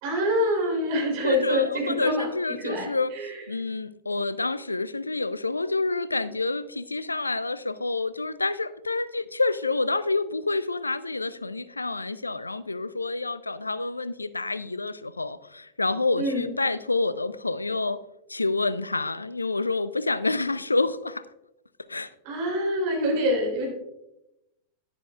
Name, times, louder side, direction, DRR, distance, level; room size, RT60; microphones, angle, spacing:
voice 1, 0.0-2.3 2.6-3.3 16.2-16.5 22.2-23.7, equal, 50° right, 3.2 m, -26 dB
voice 2, 1.2-3.1 3.5-18.0 18.3-21.2 21.9-22.1, left 3 dB, 80° left, 0.3 m, -28 dB
11.0 x 10.5 x 2.3 m
figure-of-eight pair, 90°, 0 cm